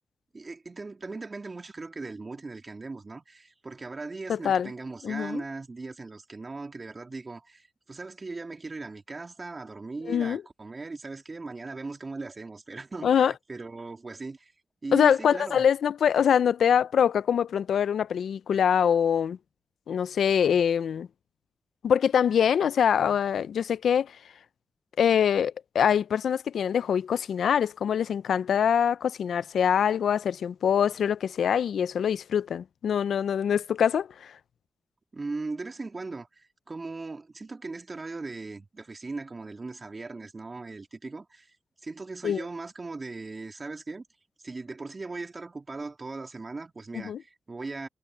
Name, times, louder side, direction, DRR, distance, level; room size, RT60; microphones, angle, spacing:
voice 1, 0.3-14.5 14.8-15.7 35.1-41.6 41.8-44.1 44.4-47.9, right 3 dB, 40° right, 2.5 m, -38 dB
voice 2, 4.3-4.7 5.0-5.4 10.1-10.4 13.0-13.3 14.9-19.4 19.9-21.1 21.8-24.2 25.0-34.3 42.2-42.4 46.9-47.2, left 8 dB, 85° left, 0.4 m, -24 dB
cardioid pair, 55°, 0 cm